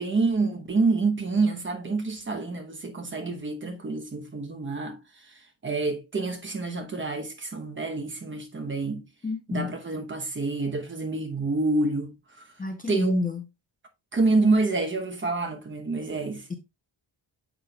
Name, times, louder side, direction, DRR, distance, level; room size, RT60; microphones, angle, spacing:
voice 1, 0.0-9.0 9.5-12.5 12.9-13.1 14.1-16.5, right 3 dB, 25° right, 1.0 m, -27 dB
voice 2, 9.2-9.7 12.6-13.4, left 2 dB, 20° left, 0.6 m, -28 dB
7.3 x 6.0 x 2.4 m
wide cardioid pair, 175°, 47 cm